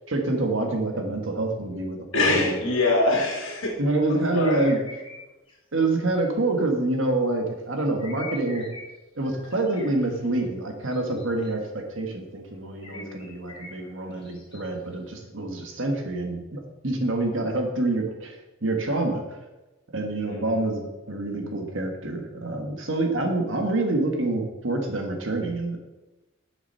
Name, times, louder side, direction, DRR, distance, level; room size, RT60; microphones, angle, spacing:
voice 1, 0.1-2.6 3.8-4.8 5.7-8.7 9.2-18.3 18.6-19.2 19.9-25.8, right 2 dB, 65° right, 3 dB, 1.6 m, -27 dB
voice 2, 2.1-3.7 4.1-4.7 12.9-13.2 20.3-20.6, left 2 dB, 70° left, -1 dB, 2.4 m, -24 dB
sound 1, 4.4-5.2 5.5-5.6 8.0-8.9 9.2-9.9 10.9-11.5 12.8-14.6, left 3 dB, 25° left, 2.0 m, -43 dB
7.1 x 7.0 x 5.6 m, 1.1 s
head